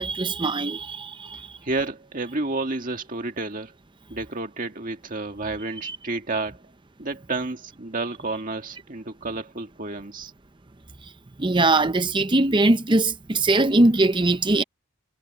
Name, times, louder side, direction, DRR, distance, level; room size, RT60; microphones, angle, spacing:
voice 1, 0.0-1.6 5.8-6.0 11.4-14.6, right 2 dB, 20° right, 0.7 m, -21 dB
voice 2, 1.6-3.7 4.1-6.6 7.0-10.3, right 3 dB, 40° right, 1.9 m, -30 dB
head